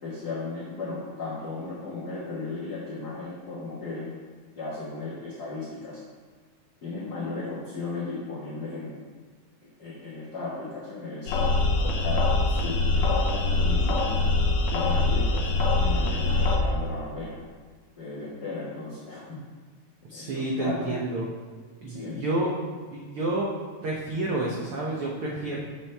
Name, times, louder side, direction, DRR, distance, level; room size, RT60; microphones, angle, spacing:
voice 1, 0.0-4.1 4.6-6.0 6.8-9.0 9.8-11.5 11.8-12.8 13.1-14.2 14.7-17.4 18.0-19.2 20.2-21.0 21.9-22.2, left 3 dB, 45° left, -9 dB, 1.4 m, -35 dB
sound 1, 11.3-16.6, left 2 dB, 70° left, 1.8 m, -23 dB
voice 2, 20.1-21.3 21.8-22.5 22.9-23.5 23.8-25.6, right 2 dB, 90° right, -3 dB, 1.2 m, -29 dB
7.3 x 7.2 x 3.4 m, 1.5 s
omnidirectional pair, 3.7 m